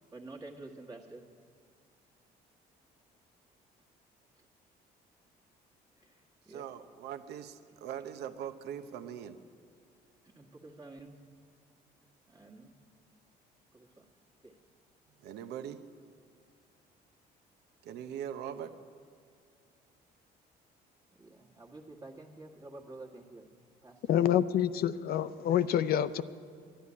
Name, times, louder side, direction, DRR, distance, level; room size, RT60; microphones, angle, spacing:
voice 1, 0.1-1.2 6.0-6.7 10.2-11.2 12.3-12.8 13.7-14.1 14.4-14.6 21.2-23.5 23.8-24.3, right 2 dB, 25° right, 0 dB, 1.5 m, -49 dB
voice 2, 6.5-9.4 15.2-15.8 17.8-18.7, right 9 dB, 75° right, 10 dB, 0.8 m, -41 dB
voice 3, 24.1-26.2, left 10 dB, 65° left, 13 dB, 0.5 m, -27 dB
11.5 x 11.5 x 9.6 m, 2.2 s
cardioid pair, 110°, 17 cm